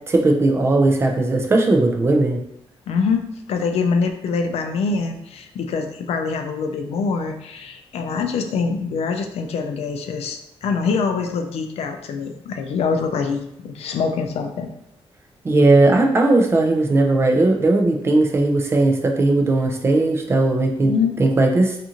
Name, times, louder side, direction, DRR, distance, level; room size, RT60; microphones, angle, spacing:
voice 1, 0.1-2.4 15.4-20.9 21.2-21.8, right 2 dB, 25° right, 2 dB, 0.4 m, -17 dB
voice 2, 2.9-14.7 20.8-21.2, left 5 dB, 80° left, 5 dB, 0.4 m, -24 dB
2.5 x 2.5 x 2.8 m, 0.78 s
wide cardioid pair, 150°, 10 cm